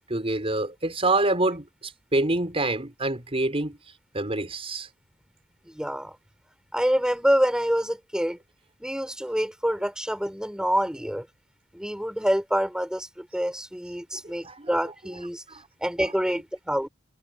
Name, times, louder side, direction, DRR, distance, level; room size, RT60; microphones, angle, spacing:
voice 1, 0.1-3.8 4.1-4.9 14.2-14.7 15.5-15.6, right 2 dB, 30° right, 4.8 m, -26 dB
voice 2, 5.7-6.2 6.7-8.4 8.8-11.3 11.7-15.4 15.8-16.9, equal, 5° right, 6.3 m, -26 dB
head